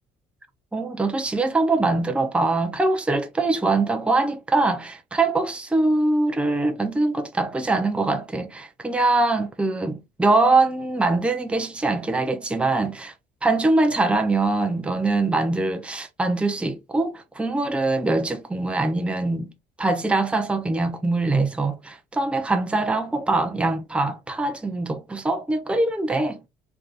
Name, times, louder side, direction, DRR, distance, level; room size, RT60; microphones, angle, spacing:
voice 1, 0.7-13.1 13.4-19.5 19.8-26.4, right 2 dB, 5° right, 0.5 m, -23 dB
3.3 x 2.8 x 2.4 m
cardioid pair, 110°, 17 cm